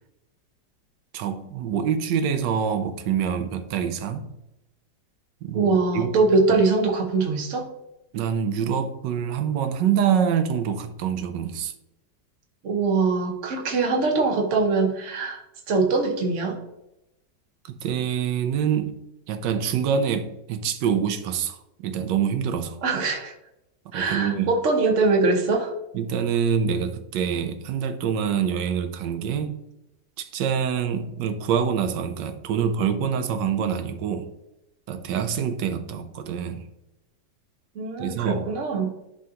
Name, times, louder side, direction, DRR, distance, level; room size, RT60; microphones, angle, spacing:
voice 1, 1.1-4.3 5.4-6.1 8.1-11.7 17.6-19.0 19.3-21.6 21.8-22.8 23.9-24.5 25.9-29.6 30.2-34.3 34.9-36.6 38.0-38.5, right 7 dB, 80° right, 1.4 m, -25 dB
voice 2, 5.5-7.7 12.6-15.4 15.7-16.6 22.8-23.3 23.9-25.7 37.7-39.0, right 3 dB, 50° right, 1.2 m, -22 dB
11.0 x 3.9 x 2.9 m
omnidirectional pair, 1.9 m